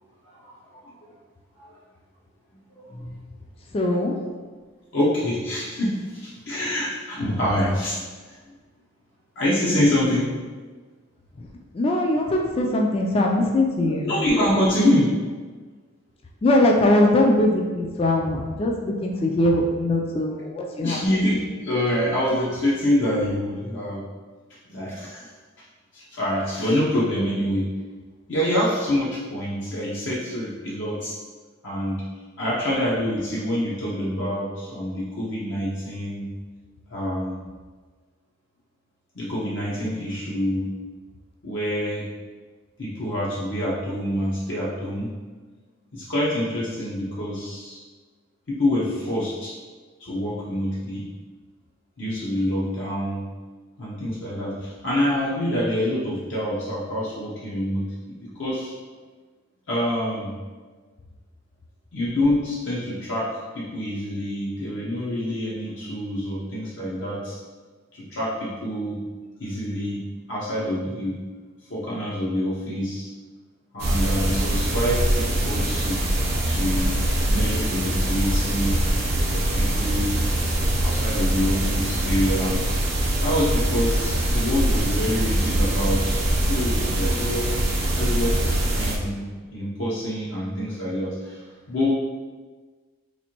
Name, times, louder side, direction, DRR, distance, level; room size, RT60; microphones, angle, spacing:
voice 1, 0.3-1.1 1.6-1.8 2.8-3.2 4.9-8.4 9.4-10.3 13.8-15.1 18.9-19.0 20.8-24.0 24.7-25.3 25.9-27.7 28.3-31.1 31.6-32.0 32.4-36.3 36.9-37.4 39.1-40.7 41.4-42.1 42.8-45.1 45.9-47.8 48.5-49.5 50.0-51.0 52.0-53.3 53.8-58.7 59.7-60.3 61.9-67.4 67.9-69.0 69.4-71.1 71.7-73.1 73.7-76.0 76.5-77.0 77.3-78.7 79.3-80.2 80.8-82.8 83.2-87.5 88.0-88.4 88.7-89.2 89.5-91.9, left 1 dB, 65° left, -6 dB, 0.7 m, -26 dB
voice 2, 3.7-4.1 11.4-11.5 11.7-14.1 16.4-21.0 21.4-21.5, left 1 dB, 30° left, 0 dB, 0.3 m, -21 dB
sound 1, 73.8-89.0, right 1 dB, 55° right, 0.7 m, -23 dB
4.1 x 2.5 x 2.9 m, 1.4 s
head